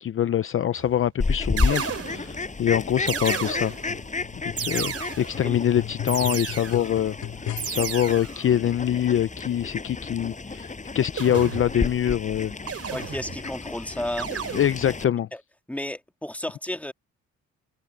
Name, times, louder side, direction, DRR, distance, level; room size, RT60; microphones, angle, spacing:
voice 1, 0.0-3.7 4.4-7.1 7.6-12.9 14.5-15.3, left 10 dB, 45° left, 0.6 m, -24 dB
sound 1, 0.8-1.1 1.6-2.4 3.1-4.0 4.6-5.5 6.1-7.0 7.6-8.4 11.2-11.9 12.7-13.5 14.2-14.9, right 7 dB, 50° right, 3.0 m, -33 dB
Fowl, 1.2-15.1, left 3 dB, 25° left, 7.2 m, -32 dB
sound 2, 3.9-8.0 8.8-8.9, left 10 dB, 75° left, 2.0 m, -37 dB
voice 2, 12.9-14.3 15.3-15.4 15.7-16.9, left 1 dB, 5° left, 2.2 m, -32 dB
cardioid pair, 90°, 30 cm